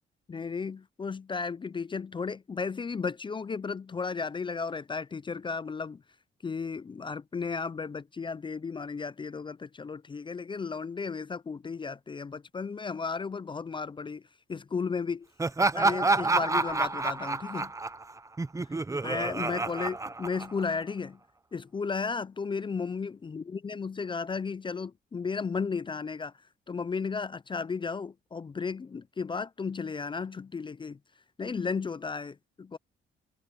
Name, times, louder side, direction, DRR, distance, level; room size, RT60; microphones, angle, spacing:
voice 1, 0.3-6.0 6.4-14.2 14.5-15.3 15.7-17.7 19.0-21.2 21.5-26.3 26.7-31.0 31.4-32.8, left 5 dB, 25° left, 0.5 m, -34 dB
Laughter, 15.4-20.8, right 3 dB, 15° right, 0.8 m, -28 dB
cardioid pair, 90°, 20 cm